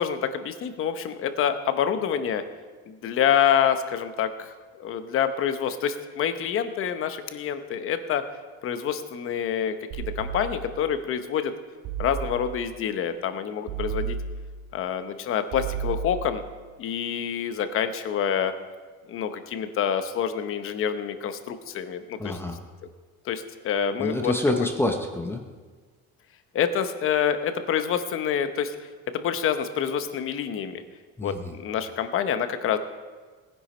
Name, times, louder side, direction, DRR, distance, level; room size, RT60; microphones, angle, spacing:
voice 1, 0.0-2.4 2.9-4.5 4.8-8.2 8.6-11.5 12.0-14.2 14.7-16.4 16.8-18.5 19.1-22.4 23.3-24.3 26.5-28.8 29.1-30.8 31.2-32.8, left 8 dB, 40° left, 9 dB, 0.9 m, -27 dB
sound 1, 9.9-10.9 11.8-12.7 13.7-14.8 15.5-16.6, right 6 dB, 70° right, 3.0 m, -33 dB
voice 2, 22.2-22.6 24.0-25.4 31.2-31.5, left 1 dB, 5° left, 3 dB, 0.7 m, -27 dB
18.5 x 10.5 x 4.3 m, 1.4 s
cardioid pair, 170°, 32 cm